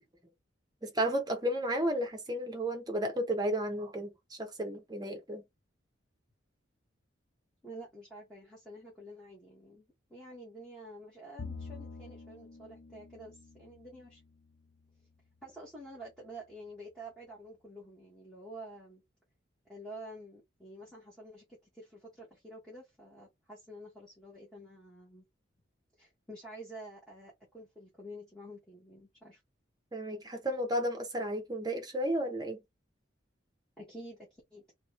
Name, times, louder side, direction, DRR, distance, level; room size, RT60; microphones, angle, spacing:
voice 1, 0.8-5.4 29.9-32.6, right 1 dB, 20° right, 0.8 m, -33 dB
voice 2, 7.6-14.2 15.4-19.0 19.7-25.2 26.0-29.4 33.8-34.6, right 1 dB, 5° left, 1.2 m, -49 dB
Bowed string instrument, 11.4-14.9, left 4 dB, 65° left, 0.6 m, -47 dB
3.0 x 3.0 x 3.1 m
head